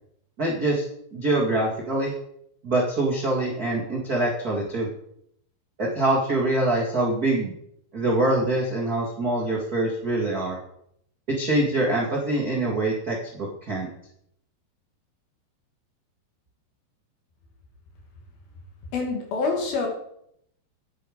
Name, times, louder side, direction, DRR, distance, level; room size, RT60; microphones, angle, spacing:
voice 1, 0.4-0.8 1.1-2.1 2.6-4.9 5.8-7.5 7.9-10.6 11.4-13.9, right 2 dB, 40° right, -4 dB, 1.3 m, -24 dB
voice 2, 18.9-19.9, left 4 dB, 60° left, 2 dB, 3.6 m, -26 dB
10.5 x 8.4 x 5.1 m, 0.71 s
omnidirectional pair, 5.0 m